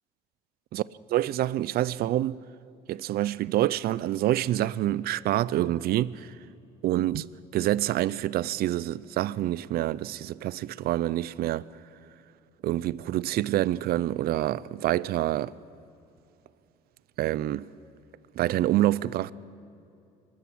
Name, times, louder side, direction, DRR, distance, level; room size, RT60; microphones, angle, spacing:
voice 1, 1.1-2.4 2.9-6.4 6.8-11.7 12.6-15.6 17.2-17.7 18.3-19.3, right 14 dB, 65° right, 0.5 m, -27 dB
23.5 x 13.0 x 8.6 m
cardioid pair, 110°, 17 cm